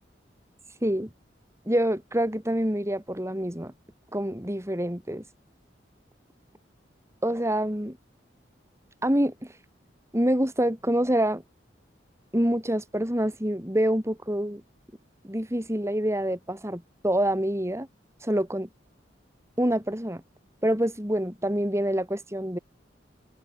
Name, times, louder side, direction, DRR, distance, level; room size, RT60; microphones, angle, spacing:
voice 1, 1.7-3.7 4.1-5.2 7.2-8.0 9.0-9.3 10.1-11.4 12.3-14.6 15.2-17.9 18.2-18.7 19.6-20.2 20.6-22.6, right 1 dB, 15° right, 5.8 m, -26 dB
head